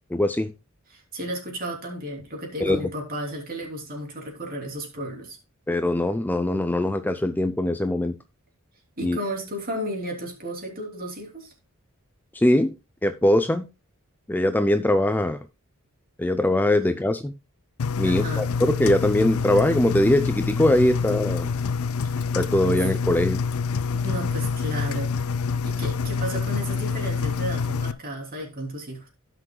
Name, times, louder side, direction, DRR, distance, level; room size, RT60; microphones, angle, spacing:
voice 1, 0.1-0.5 2.6-2.8 5.7-8.2 9.0-9.2 12.3-12.7 13.0-13.7 14.3-15.4 16.2-17.3 18.0-21.5 22.4-23.4, left 1 dB, 10° left, 0.4 m, -22 dB
voice 2, 0.9-5.4 9.0-11.5 18.0-18.5 22.2-22.3 23.9-29.1, right 1 dB, 45° right, 3.1 m, -33 dB
Engine, 17.8-27.9, left 5 dB, 75° left, 0.5 m, -26 dB
16.5 x 6.0 x 2.2 m
head